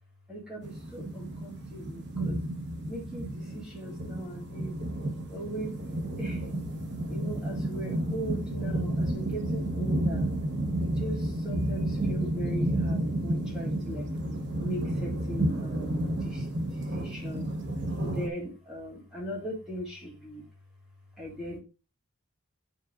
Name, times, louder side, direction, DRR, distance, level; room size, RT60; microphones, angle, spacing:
voice 1, 0.3-2.4 2.9-5.8 6.2-6.5 7.1-10.3 10.8-14.1 14.6-17.5 18.1-20.5 21.2-21.6, equal, 5° right, -3 dB, 1.9 m, -39 dB
sound 1, 0.6-18.3, right 1 dB, 55° right, 1.0 m, -31 dB
8.6 x 4.7 x 2.5 m, 0.31 s
head